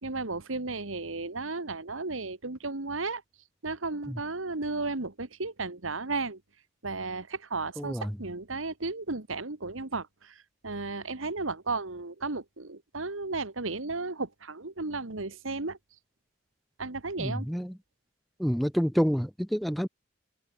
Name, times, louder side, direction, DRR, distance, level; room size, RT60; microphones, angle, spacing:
voice 1, 0.0-3.2 3.6-6.4 6.8-15.8 16.8-17.5, right 3 dB, 85° right, 1.8 m, -34 dB
voice 2, 7.8-8.1 17.2-17.7 18.4-19.9, equal, ahead, 0.4 m, -28 dB
head